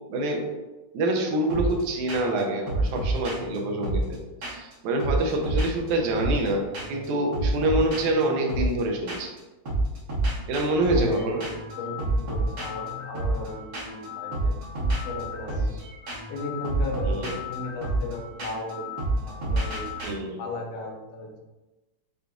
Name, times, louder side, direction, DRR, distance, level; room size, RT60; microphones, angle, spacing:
voice 1, 0.1-0.5 0.9-4.2 4.4-9.3 10.5-11.4 17.0-17.3 20.0-20.4, right 1 dB, 90° right, 2 dB, 2.1 m, -26 dB
sound 1, 1.5-1.8 2.1-2.4 2.7-4.7 5.0-6.5 6.7-7.1 7.3-9.4 9.6-20.1, right 1 dB, 60° right, 1.1 m, -29 dB
voice 2, 10.9-11.4 11.8-15.7 16.3-19.9 20.4-21.4, left 2 dB, 70° left, -1 dB, 1.7 m, -35 dB
6.6 x 2.5 x 2.3 m, 1.1 s
omnidirectional pair, 3.3 m